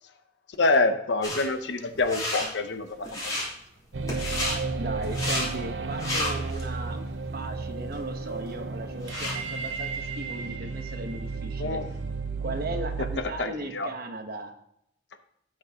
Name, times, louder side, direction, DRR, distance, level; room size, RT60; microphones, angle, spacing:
voice 1, 0.6-3.5 11.6-11.8 13.4-13.9, left 3 dB, 65° left, 8 dB, 0.9 m, -26 dB
sound 1, 1.2-1.5 1.9-2.5 3.0-3.5 4.1-4.6 5.0-5.5 5.9-6.6 7.1-7.2 7.9-8.0 8.3-9.4, left 1 dB, 20° left, 3.2 m, -31 dB
sound 2, 3.9-13.2, right 4 dB, 75° right, 0.7 m, -33 dB
voice 2, 4.4-7.0 7.3-11.8 12.4-14.6, right 2 dB, 55° right, 5 dB, 1.2 m, -37 dB
16.5 x 6.3 x 2.9 m, 0.77 s
head